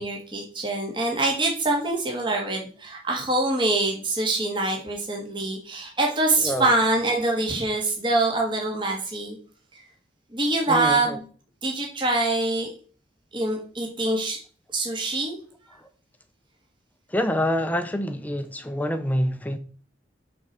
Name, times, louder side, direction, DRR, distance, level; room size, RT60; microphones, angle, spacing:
voice 1, 0.0-9.4 10.3-11.2 11.6-12.7 13.3-14.4 14.7-15.4, right 2 dB, 25° right, 1.8 m, -24 dB
voice 2, 6.4-6.7 10.7-11.2 15.8-15.9 17.1-19.6, equal, 10° left, 0.7 m, -26 dB
6.3 x 4.5 x 6.6 m
head